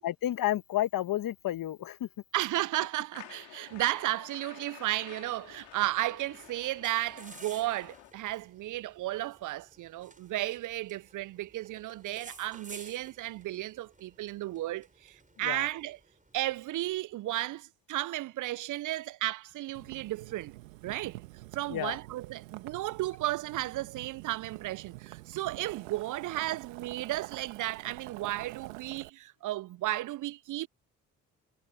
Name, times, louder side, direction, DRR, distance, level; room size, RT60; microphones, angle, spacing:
voice 1, 0.0-2.1 15.4-15.7 21.7-22.0, left 13 dB, 55° left, 1.6 m, -31 dB
voice 2, 2.3-16.0 16.3-20.5 20.8-21.2 21.5-30.7, right 16 dB, 50° right, 0.6 m, -34 dB
sound 1, 3.1-8.1, left 28 dB, 75° left, 3.3 m, -51 dB
sound 2, 5.1-16.9, right 3 dB, 20° right, 5.7 m, -55 dB
Boiling, 19.7-29.1, right 21 dB, 80° right, 2.3 m, -47 dB
figure-of-eight pair, 45°, 39 cm